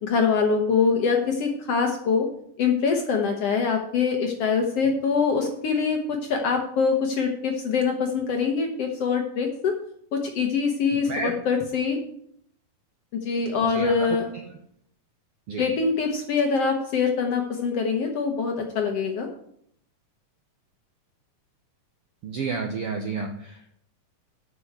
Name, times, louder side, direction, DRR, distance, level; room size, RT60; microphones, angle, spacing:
voice 1, 0.0-2.3 2.6-9.7 10.1-12.0 13.2-14.3 15.6-19.3, left 5 dB, 65° left, 3 dB, 1.6 m, -24 dB
voice 2, 22.2-23.3, right 4 dB, 70° right, 3 dB, 1.4 m, -29 dB
8.0 x 6.1 x 7.9 m, 0.68 s
omnidirectional pair, 3.8 m